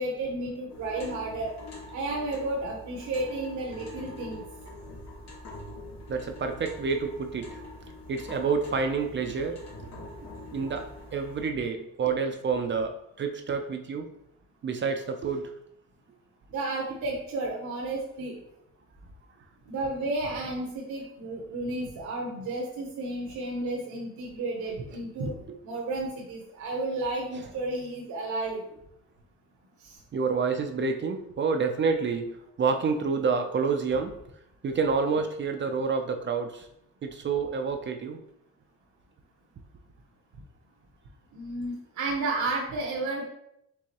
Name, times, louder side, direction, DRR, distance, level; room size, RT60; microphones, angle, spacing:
voice 1, 0.0-4.4 16.5-18.4 19.7-25.3 25.6-28.6 29.8-30.0 41.3-43.3, right 2 dB, 70° right, -1 dB, 0.9 m, -32 dB
sound 1, 0.7-11.4, left 1 dB, 65° left, 1.4 m, -44 dB
voice 2, 6.1-7.6 8.1-9.6 10.5-14.1 14.6-15.4 30.1-34.1 34.6-36.7 37.0-38.2, right 5 dB, 40° right, 5 dB, 0.5 m, -28 dB
4.7 x 3.4 x 2.9 m, 0.77 s
cardioid pair, 90°, 30 cm